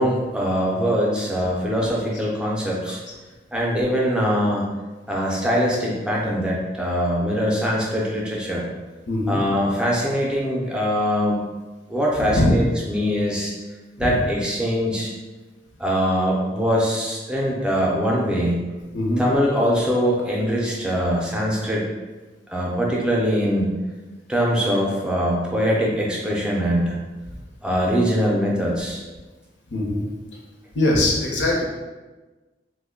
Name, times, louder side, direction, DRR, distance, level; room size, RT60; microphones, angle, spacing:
voice 1, 0.0-3.0 3.5-4.7 5.1-8.7 9.3-11.4 11.9-13.5 14.0-15.1 15.8-18.6 19.2-21.9 22.5-23.7 24.3-27.0 27.6-29.0, equal, 5° right, -4 dB, 0.5 m, -22 dB
voice 2, 9.1-9.4 12.2-12.6 14.0-14.1 18.9-19.2 29.7-30.0 30.7-31.6, left 1 dB, 75° left, -2 dB, 0.7 m, -21 dB
3.1 x 2.1 x 3.6 m, 1.2 s
head